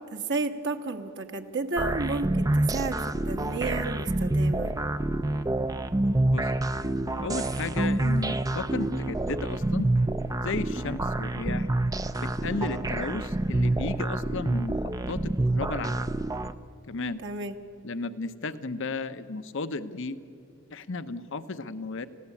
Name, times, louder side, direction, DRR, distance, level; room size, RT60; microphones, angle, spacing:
voice 1, 0.0-3.0 3.2-4.7 17.2-17.5, right 3 dB, 55° right, 5 dB, 1.4 m, -32 dB
sound 1, 1.8-16.5, right 1 dB, 15° right, 0.5 m, -27 dB
voice 2, 7.2-9.9 10.4-11.7 12.2-14.7 15.1-16.0 16.9-17.2 17.8-20.2 20.7-22.1, left 3 dB, 65° left, 12 dB, 0.9 m, -34 dB
29.5 x 16.0 x 8.5 m, 2.5 s
head